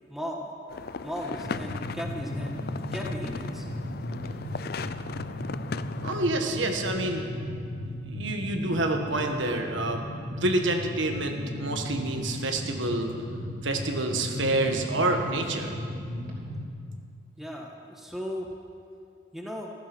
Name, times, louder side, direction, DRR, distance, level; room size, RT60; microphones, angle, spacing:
voice 1, 0.1-0.5 1.0-2.6 2.9-3.6 17.4-18.5 19.3-19.7, equal, ahead, 0 dB, 1.4 m, -36 dB
sound 1, 0.7-6.3, left 4 dB, 50° left, 0.4 m, -38 dB
sound 2, 1.4-16.6, left 1 dB, 45° right, 3.2 m, -36 dB
voice 2, 6.0-7.3 8.1-13.1 13.6-15.8, right 2 dB, 70° right, 4 dB, 1.4 m, -28 dB
15.0 x 14.0 x 6.1 m, 2.4 s
head